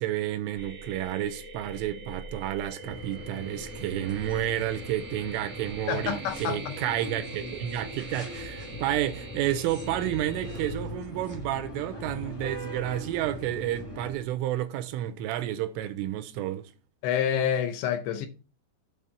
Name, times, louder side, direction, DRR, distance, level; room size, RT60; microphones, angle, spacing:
voice 1, 0.0-16.7, right 12 dB, 85° right, 3.2 m, -31 dB
sound 1, 0.5-10.7, right 2 dB, 55° right, 0.7 m, -43 dB
sound 2, 2.8-14.1, left 1 dB, 20° left, 0.9 m, -41 dB
voice 2, 5.9-6.7 17.0-18.3, left 9 dB, 80° left, 2.6 m, -28 dB
sound 3, 8.3-14.3, equal, 50° left, 0.8 m, -45 dB
8.9 x 3.7 x 6.9 m
omnidirectional pair, 5.8 m